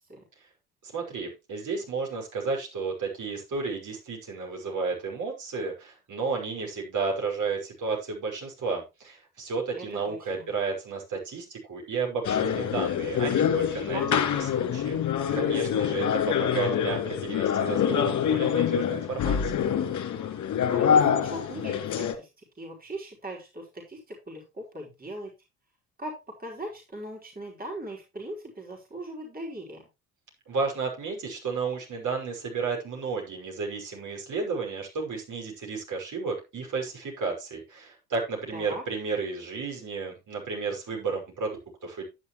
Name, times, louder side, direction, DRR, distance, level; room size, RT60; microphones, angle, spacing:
voice 1, 0.8-15.0 15.3-19.7 30.5-42.0, right 4 dB, 40° right, 0 dB, 5.7 m, -32 dB
voice 2, 9.7-10.5 13.9-14.6 20.7-22.3 22.6-25.3 26.0-26.1 26.4-29.8 38.5-38.8, right 1 dB, 20° right, -1 dB, 4.4 m, -39 dB
sound 1, 12.2-22.1, left 8 dB, 40° left, 2.5 m, -25 dB
10.5 x 10.0 x 3.2 m, 0.26 s
figure-of-eight pair, 50°, 44 cm